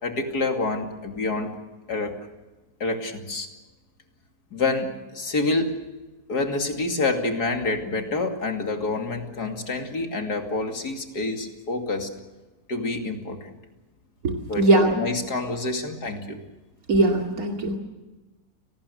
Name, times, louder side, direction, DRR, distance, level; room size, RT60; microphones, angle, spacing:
voice 1, 0.0-1.6 1.9-2.2 2.8-3.5 4.5-5.8 6.3-12.1 12.7-13.5 14.5-16.4, left 3 dB, 90° left, 4 dB, 3.2 m, -27 dB
voice 2, 14.2-15.0 16.9-17.8, right 2 dB, 65° right, 2 dB, 2.9 m, -20 dB
30.0 x 19.0 x 6.9 m, 1.2 s
omnidirectional pair, 1.7 m